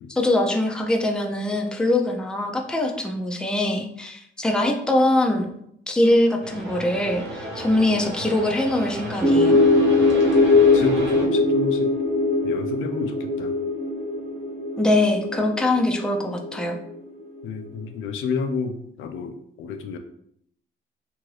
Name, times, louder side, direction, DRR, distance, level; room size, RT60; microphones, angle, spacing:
voice 1, 0.1-5.5 5.9-9.6 14.8-16.8, left 1 dB, 5° left, 2 dB, 0.4 m, -22 dB
sound 1, 6.4-11.3, right 1 dB, 65° right, 1.0 m, -33 dB
sound 2, 9.2-16.9, left 3 dB, 30° right, 0.7 m, -20 dB
voice 2, 10.7-11.9 12.4-13.6 17.4-20.0, left 4 dB, 80° left, 6 dB, 0.4 m, -30 dB
2.6 x 2.6 x 3.1 m, 0.72 s
cardioid pair, 90°, 20 cm